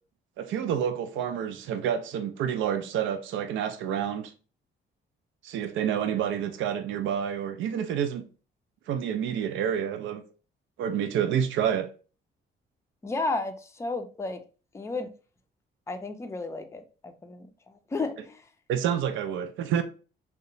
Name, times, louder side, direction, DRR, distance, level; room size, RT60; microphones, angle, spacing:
voice 1, 0.4-4.3 5.4-8.2 8.9-10.2 10.8-11.9 18.7-19.8, right 9 dB, 75° right, 0.4 m, -28 dB
voice 2, 13.0-14.4 14.7-15.1 15.9-18.5, left 3 dB, 15° left, 0.4 m, -33 dB
2.8 x 2.1 x 2.5 m
cardioid pair, 90°, 20 cm